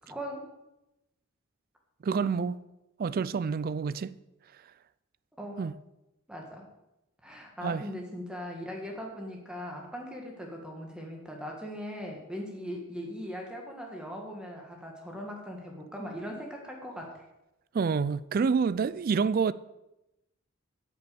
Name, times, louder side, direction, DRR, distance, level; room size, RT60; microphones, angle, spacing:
voice 1, 0.0-0.5 2.2-2.6 5.4-5.7 6.3-6.6 7.2-17.3, equal, 5° right, 1.7 m, -40 dB
voice 2, 2.0-2.6 3.0-4.2 5.6-5.7 7.6-7.8 17.7-19.5, right 5 dB, 40° right, 0.3 m, -28 dB
9.2 x 8.2 x 7.0 m
head